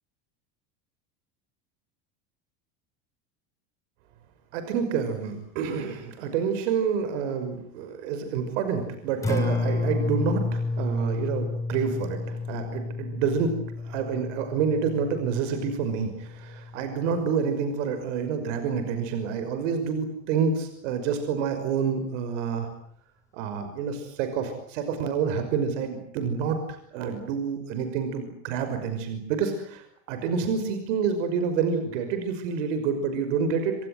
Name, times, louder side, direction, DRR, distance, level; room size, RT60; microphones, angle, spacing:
voice 1, 4.5-13.6 13.8-22.7 23.3-33.8, right 6 dB, 85° right, 8 dB, 5.9 m, -28 dB
Acoustic guitar, 9.1-17.3, left 3 dB, 10° left, 7.1 m, -31 dB
27.5 x 26.0 x 8.0 m, 0.67 s
cardioid pair, 145°, 35 cm